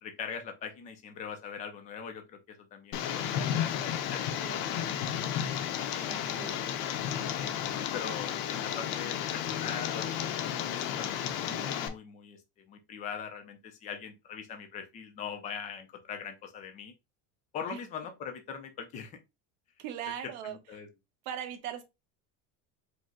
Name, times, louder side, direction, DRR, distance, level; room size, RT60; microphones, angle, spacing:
voice 1, 0.0-5.0 5.9-6.6 7.7-16.9 17.5-19.2 20.4-20.9, left 7 dB, 20° left, 0.3 m, -42 dB
Tick, 2.9-11.9, left 9 dB, 50° left, 0.6 m, -33 dB
voice 2, 4.4-5.0 6.1-6.8 11.5-11.7 17.7-17.8 19.8-20.6 21.2-21.8, right 10 dB, 70° right, 1.0 m, -40 dB
5.1 x 2.0 x 3.6 m
cardioid pair, 175°, 42 cm